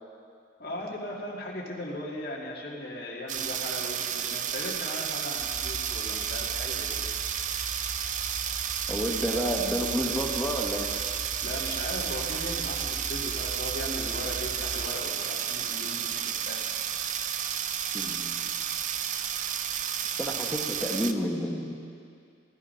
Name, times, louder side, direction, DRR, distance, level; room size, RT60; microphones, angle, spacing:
voice 1, 0.6-7.1 11.4-16.6, left 1 dB, 55° left, -4 dB, 2.1 m, -38 dB
sound 1, 3.3-21.1, right 9 dB, 40° right, 0.5 m, -32 dB
sound 2, 5.4-14.9, right 1 dB, 75° right, 1.9 m, -42 dB
voice 2, 8.9-10.9 17.9-18.5 20.0-21.8, equal, 10° left, 0 dB, 1.2 m, -30 dB
14.0 x 12.5 x 5.7 m, 2.4 s
head